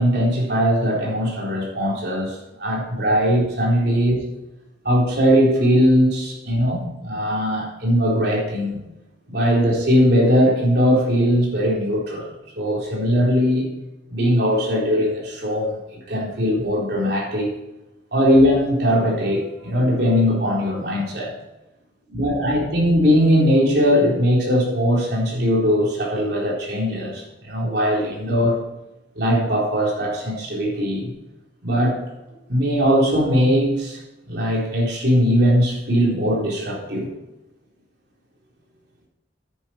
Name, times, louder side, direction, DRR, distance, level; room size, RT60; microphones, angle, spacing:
voice 1, 0.0-4.2 4.8-8.8 9.3-12.3 12.6-13.7 14.1-15.7 16.1-17.5 18.1-21.3 22.1-28.6 29.2-31.1 31.6-32.0 32.5-34.0 34.3-37.1, equal, 65° right, -2 dB, 4.0 m, -20 dB
10.0 x 10.0 x 4.4 m, 0.98 s
head